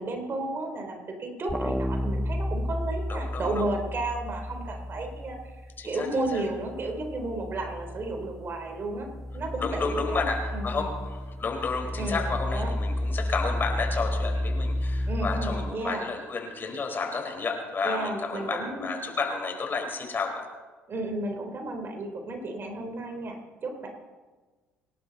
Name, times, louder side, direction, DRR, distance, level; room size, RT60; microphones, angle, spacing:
voice 1, 0.0-5.4 5.8-9.1 9.3-10.3 10.5-10.9 12.0-12.8 15.1-16.1 17.8-18.9 20.9-23.9, right 2 dB, 40° right, 4 dB, 3.7 m, -33 dB
sound 1, 1.5-5.8 6.2-15.7, left 1 dB, ahead, 0.7 m, -32 dB
voice 2, 3.1-3.7 5.8-6.4 9.6-20.5, left 4 dB, 35° left, 3 dB, 4.4 m, -31 dB
27.5 x 11.5 x 4.1 m, 1.3 s
hypercardioid pair, 55°, 6 cm